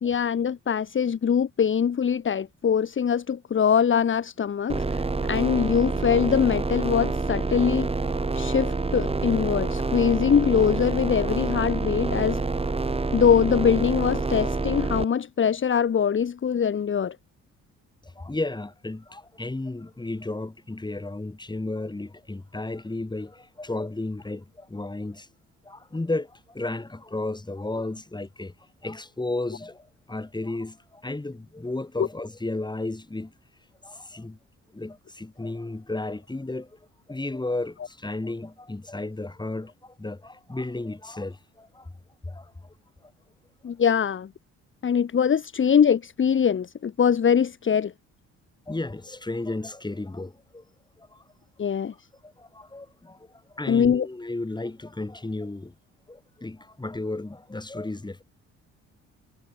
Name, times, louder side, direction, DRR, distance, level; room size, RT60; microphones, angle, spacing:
voice 1, 0.0-7.9 8.3-12.4 13.1-17.2 32.0-32.1 43.6-44.3 44.8-47.9 51.6-51.9 53.7-54.1, left 7 dB, 40° left, 1.5 m, -23 dB
sound 1, 4.7-15.0, right 3 dB, 20° right, 2.2 m, -27 dB
voice 2, 18.0-25.3 25.6-28.5 28.8-33.3 33.8-34.4 34.7-36.8 37.1-41.9 42.2-42.7 43.0-43.1 48.7-50.6 51.0-51.2 52.2-55.7 56.1-58.2, left 2 dB, 15° left, 5.8 m, -33 dB
cardioid pair, 90°, 30 cm